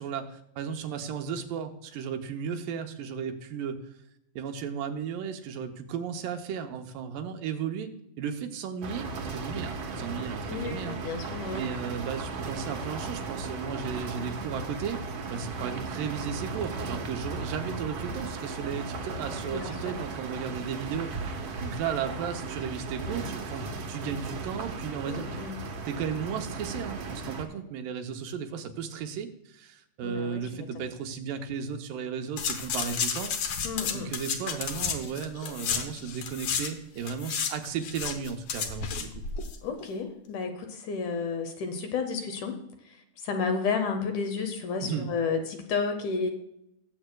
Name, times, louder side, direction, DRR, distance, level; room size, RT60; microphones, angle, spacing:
voice 1, 0.0-3.8 4.4-7.9 8.2-15.0 15.3-25.3 25.9-33.3 33.9-39.2 44.8-45.1, right 7 dB, 75° right, 6 dB, 2.4 m, -35 dB
sound 1, 8.8-27.5, right 3 dB, 60° right, 1.8 m, -36 dB
voice 2, 10.5-11.7 19.4-20.0 25.0-25.6 30.0-30.9 33.6-34.2 39.6-42.6 43.2-46.3, left 5 dB, 70° left, 6 dB, 2.2 m, -32 dB
sound 2, 32.4-36.7 37.0-39.6 39.8-39.9, left 6 dB, 90° left, 1.3 m, -32 dB
19.0 x 7.8 x 2.2 m, 0.80 s
omnidirectional pair, 4.1 m